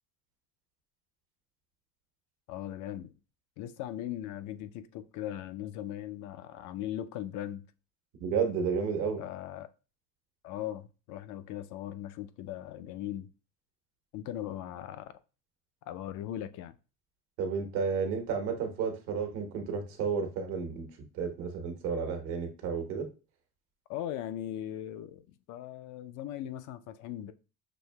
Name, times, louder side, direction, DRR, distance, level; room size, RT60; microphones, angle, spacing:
voice 1, 2.5-3.1 3.6-7.6 9.2-9.7 10.4-13.3 14.1-15.2 15.9-16.8 23.9-27.3, left 12 dB, 55° left, 0.4 m, -39 dB
voice 2, 8.2-9.2 17.4-20.9 21.1-23.1, right 5 dB, 75° right, 1.1 m, -32 dB
6.2 x 2.7 x 2.2 m
supercardioid pair, 105°, 36 cm